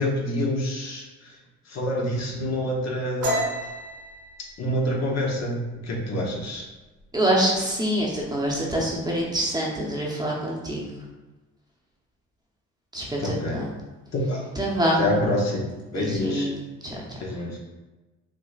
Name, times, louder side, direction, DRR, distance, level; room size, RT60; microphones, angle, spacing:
voice 1, 0.0-1.3 1.7-3.4 4.6-6.6 13.2-13.6 14.1-14.5 15.0-16.5 17.2-17.6, left 1 dB, 60° left, -1 dB, 0.9 m, -27 dB
sound 1, 3.2-6.6 7.0-7.3 7.7-8.2 8.5-9.2, equal, 75° right, 1.2 m, -32 dB
voice 2, 7.1-10.9 12.9-13.7 14.6-15.0 15.9-16.6 16.8-17.2, right 1 dB, 15° right, -4 dB, 0.8 m, -25 dB
5.9 x 2.1 x 2.4 m, 1.1 s
cardioid pair, 90°, 30 cm